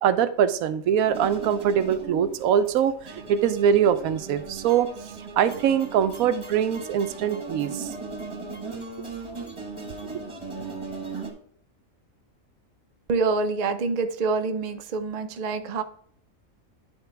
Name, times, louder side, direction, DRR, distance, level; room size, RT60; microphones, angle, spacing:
voice 1, 0.0-8.0, right 8 dB, 90° right, 1.1 m, -23 dB
sound 1, 1.0-11.3, right 3 dB, 25° right, 1.2 m, -38 dB
voice 2, 13.1-15.8, right 4 dB, 45° right, 0.5 m, -26 dB
9.7 x 4.0 x 3.4 m
omnidirectional pair, 1.4 m